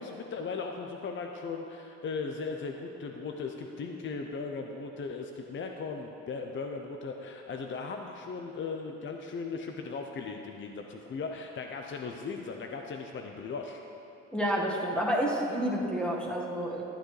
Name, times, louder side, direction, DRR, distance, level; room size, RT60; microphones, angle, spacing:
voice 1, 0.0-13.8, left 4 dB, 40° left, 3 dB, 0.6 m, -37 dB
voice 2, 14.3-16.8, equal, 5° left, -3 dB, 1.6 m, -29 dB
12.5 x 8.8 x 3.3 m, 3.0 s
cardioid pair, 90°, 30 cm